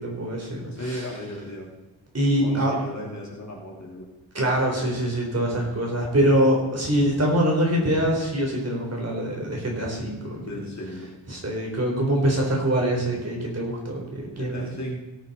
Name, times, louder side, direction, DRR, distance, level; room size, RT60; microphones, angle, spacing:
voice 1, 0.0-1.0 2.1-2.7 4.3-10.4 11.3-14.6, right 1 dB, 30° right, -1 dB, 3.8 m, -24 dB
voice 2, 0.7-1.7 2.4-4.1 10.4-11.1 14.3-15.0, left 1 dB, 35° left, -2 dB, 2.7 m, -35 dB
17.5 x 9.4 x 4.2 m, 1.0 s
wide cardioid pair, 170°, 47 cm